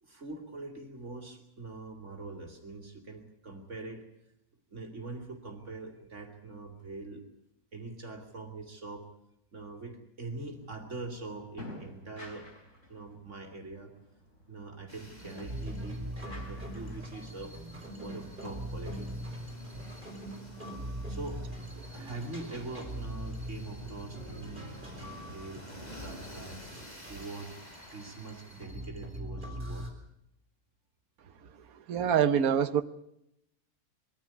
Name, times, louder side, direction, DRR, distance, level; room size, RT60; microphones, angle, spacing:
voice 1, 0.0-4.0 4.7-7.3 7.7-9.1 9.5-12.5 12.9-13.9 14.5-19.1 21.1-21.4 21.9-26.6 27.1-29.9, right 3 dB, 50° right, 5 dB, 3.0 m, -43 dB
sound 1, 10.3-18.5, left 1 dB, 55° left, 4.4 m, -53 dB
sound 2, 14.9-28.6, equal, 25° left, 4.2 m, -51 dB
sound 3, 15.2-29.9, right 1 dB, 30° right, 4.8 m, -42 dB
voice 2, 31.9-32.8, right 8 dB, 70° right, 11 dB, 1.4 m, -25 dB
22.5 x 14.5 x 9.7 m, 0.81 s
omnidirectional pair, 1.6 m